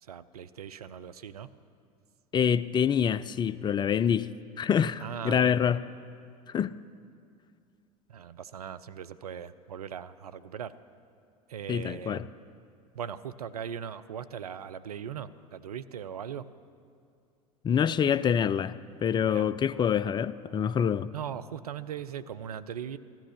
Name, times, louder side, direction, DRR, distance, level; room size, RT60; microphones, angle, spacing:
voice 1, 0.0-1.5 5.0-5.6 8.1-10.7 11.5-12.3 12.9-16.5 19.2-19.5 21.1-23.0, right 8 dB, 80° right, 12 dB, 0.5 m, -39 dB
voice 2, 2.3-4.3 4.6-5.8 6.5-6.7 11.7-12.2 17.6-18.7 19.0-21.1, left 8 dB, 25° left, 16 dB, 0.4 m, -26 dB
15.0 x 12.0 x 6.5 m, 2.4 s
figure-of-eight pair, 75°, 19 cm